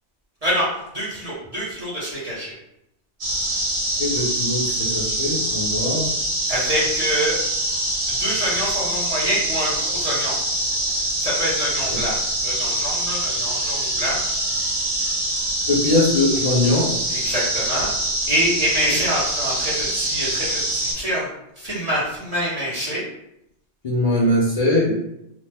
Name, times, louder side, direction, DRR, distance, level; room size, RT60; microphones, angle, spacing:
voice 1, 0.4-2.5 6.5-7.4 8.2-10.4 11.2-12.2 12.4-14.2 17.1-17.9 18.3-21.3 21.6-23.0, equal, 35° right, -7 dB, 0.8 m, -25 dB
sound 1, 3.2-20.9, right 1 dB, 70° right, 1.2 m, -24 dB
voice 2, 4.0-6.0 15.7-16.9 23.8-24.9, left 2 dB, 40° left, -8 dB, 0.6 m, -21 dB
2.9 x 2.0 x 3.3 m, 0.81 s
omnidirectional pair, 1.2 m